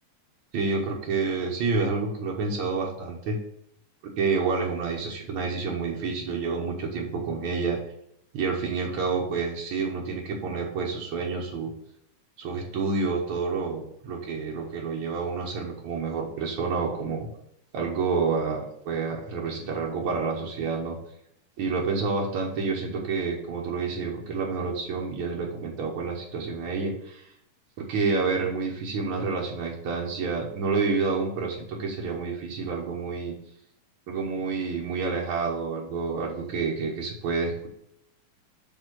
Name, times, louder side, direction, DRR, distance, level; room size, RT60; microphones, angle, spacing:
voice 1, 0.5-3.4 4.2-7.8 8.3-11.7 12.4-17.3 17.7-21.0 21.6-27.3 27.8-33.3 34.1-37.7, right 4 dB, 75° right, -1 dB, 1.2 m, -29 dB
6.1 x 3.7 x 6.0 m, 0.75 s
omnidirectional pair, 3.6 m